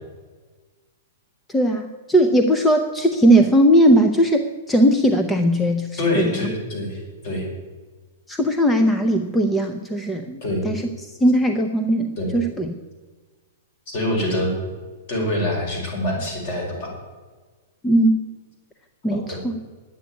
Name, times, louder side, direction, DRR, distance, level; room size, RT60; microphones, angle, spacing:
voice 1, 1.5-6.5 8.3-12.7 17.8-18.2 19.0-19.6, right 1 dB, 5° left, 6 dB, 0.6 m, -19 dB
voice 2, 6.0-7.5 10.4-10.7 12.2-12.3 13.9-14.5 15.1-16.9 19.1-19.4, left 1 dB, 45° left, 0 dB, 5.3 m, -25 dB
10.5 x 8.4 x 9.6 m, 1.4 s
hypercardioid pair, 165°, 0 cm